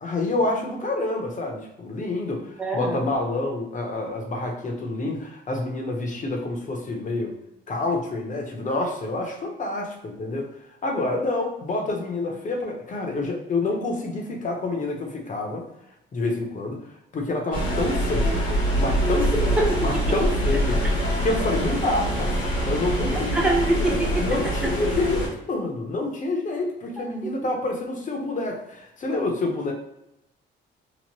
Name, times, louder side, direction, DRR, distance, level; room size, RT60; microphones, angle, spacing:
voice 1, 0.0-7.3 7.7-10.5 10.8-15.7 16.1-16.8 17.1-18.4 18.8-20.8 21.2-23.5 24.2-29.7, left 2 dB, 40° left, 1 dB, 0.8 m, -28 dB
voice 2, 2.6-3.0 19.6-19.7 23.3-24.1, right 2 dB, 5° right, -2 dB, 0.6 m, -23 dB
sound 1, 17.5-25.3, equal, 70° left, 1.2 m, -24 dB
3.0 x 2.0 x 3.0 m, 0.85 s
cardioid pair, 90°, 20 cm